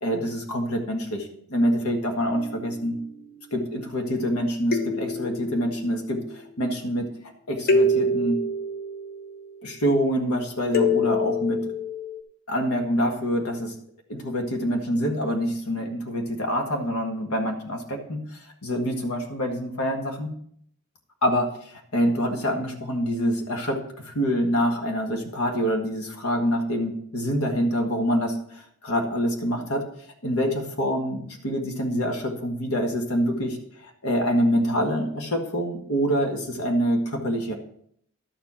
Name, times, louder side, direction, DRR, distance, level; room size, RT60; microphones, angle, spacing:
voice 1, 0.0-3.0 3.5-7.1 7.5-8.4 9.6-11.7 12.5-13.7 14.1-20.3 21.2-23.8 24.0-29.8 30.2-37.6, equal, 80° left, 3 dB, 1.7 m, -26 dB
sound 1, 2.3-2.9 4.7-6.0 7.7-9.6 10.7-12.2, left 2 dB, 45° left, 0.7 m, -26 dB
11.5 x 7.1 x 4.4 m, 0.66 s
head